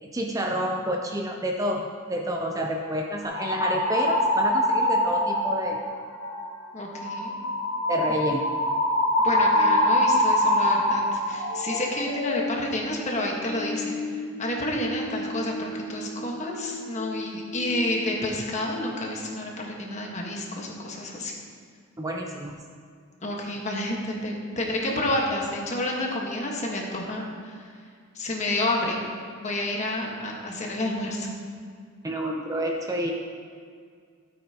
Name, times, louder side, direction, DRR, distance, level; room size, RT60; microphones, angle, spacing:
voice 1, 0.0-5.8 7.9-8.4 22.0-22.6 32.0-33.1, equal, 15° right, 2 dB, 0.5 m, -29 dB
sound 1, 3.2-5.8 6.2-6.5 6.9-17.3 17.5-18.2, left 1 dB, 85° left, 1.3 m, -26 dB
voice 2, 6.7-7.4 9.2-21.3 23.2-27.6 28.1-29.0 29.4-31.3, left 1 dB, 35° left, -1 dB, 1.4 m, -30 dB
13.0 x 8.4 x 2.9 m, 2.1 s
head